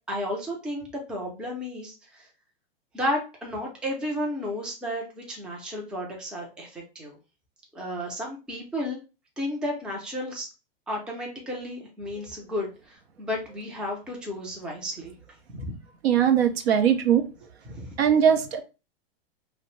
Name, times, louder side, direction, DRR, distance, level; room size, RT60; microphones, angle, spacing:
voice 1, 0.1-2.3 2.9-7.2 7.7-9.0 9.4-10.5 10.9-15.1 15.5-15.7 17.7-18.0, left 1 dB, 5° right, 0.4 m, -33 dB
voice 2, 16.0-17.2 18.0-18.6, right 8 dB, 80° right, 0.6 m, -20 dB
2.6 x 2.0 x 3.0 m
hypercardioid pair, 135°, 31 cm